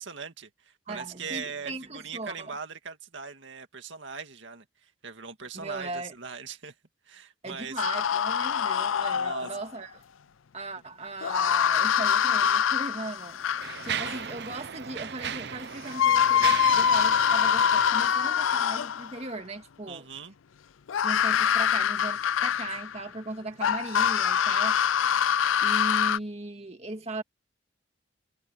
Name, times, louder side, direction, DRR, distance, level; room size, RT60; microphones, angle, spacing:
voice 1, 0.0-6.7 7.1-7.8 9.1-9.5 19.9-20.3, right 5 dB, 70° right, 2.0 m, -40 dB
voice 2, 0.9-2.5 5.5-6.1 7.4-10.0 10.5-13.4 13.8-20.0 21.0-25.2 25.6-27.2, right 2 dB, 35° right, 2.0 m, -38 dB
sound 1, 7.8-9.6 11.2-14.2 15.5-15.6 15.9-19.2 20.9-23.0 23.6-26.2, left 8 dB, 90° left, 0.5 m, -24 dB
Mechanisms, 12.2-12.4 13.1-18.9, right 7 dB, 55° right, 0.8 m, -37 dB
head